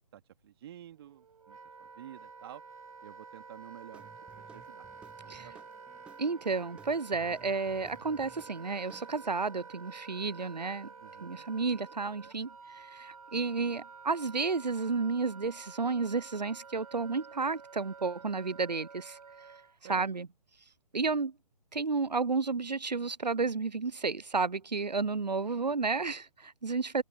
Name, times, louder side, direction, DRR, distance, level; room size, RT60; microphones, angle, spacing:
voice 1, 0.1-2.6 3.0-4.1 4.5-4.9 5.2-5.6 11.0-11.5 19.8-20.1, right 11 dB, 35° right, 2.7 m, -50 dB
Wind instrument woodwind instrument, 0.9-19.8, right 5 dB, 60° right, 5.4 m, -50 dB
Guitar / Drum, 3.9-9.5, right 6 dB, 5° right, 0.6 m, -57 dB
voice 2, 6.2-10.9 11.2-19.2 19.9-20.3 20.9-21.3 21.7-27.0, right 4 dB, 80° right, 0.7 m, -32 dB
figure-of-eight pair, 135°, 21 cm